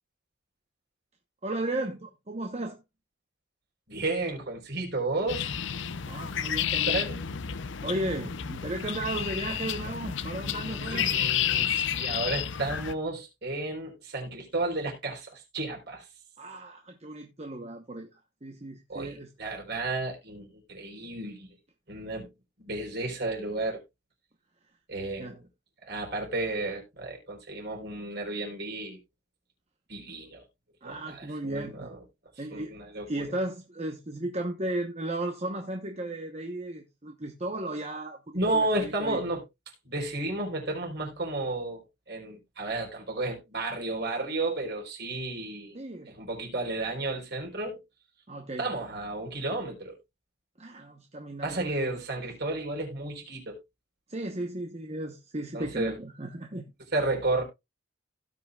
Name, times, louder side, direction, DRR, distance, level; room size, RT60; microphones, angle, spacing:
voice 1, 1.4-2.8 6.1-7.1 7.8-11.1 16.4-18.1 18.4-19.3 25.2-25.4 30.1-30.2 30.8-31.9 32.4-32.7 33.1-39.2 45.7-46.2 48.3-48.7 50.6-52.0 54.1-56.7, right 1 dB, 30° right, 1.0 m, -35 dB
voice 2, 3.9-5.5 6.7-7.2 10.9-16.1 18.9-21.6 21.9-22.3 22.6-23.8 24.9-25.4 25.8-29.0 29.9-30.4 30.8-32.0 32.5-33.3 38.3-39.4 39.8-45.8 46.1-47.8 48.6-49.9 51.4-53.6 55.5-55.9 56.9-57.4, right 2 dB, 50° right, 4.1 m, -32 dB
sound 1, 5.3-12.9, left 9 dB, 60° left, 0.6 m, -31 dB
17.0 x 5.7 x 2.4 m
head